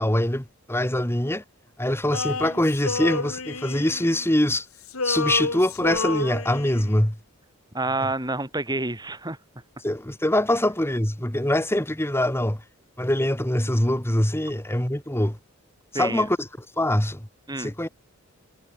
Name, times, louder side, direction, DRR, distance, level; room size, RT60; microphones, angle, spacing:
voice 1, 0.0-1.4 1.8-4.7 5.0-7.2 9.8-12.6 13.0-15.4 15.9-16.5 16.8-17.3 17.6-17.9, left 1 dB, 10° left, 1.9 m, -23 dB
Male singing, 2.1-4.6 4.8-7.0, left 3 dB, 70° left, 3.1 m, -30 dB
voice 2, 7.7-9.4 15.9-16.3 17.5-17.7, right 2 dB, 20° right, 7.4 m, -28 dB
head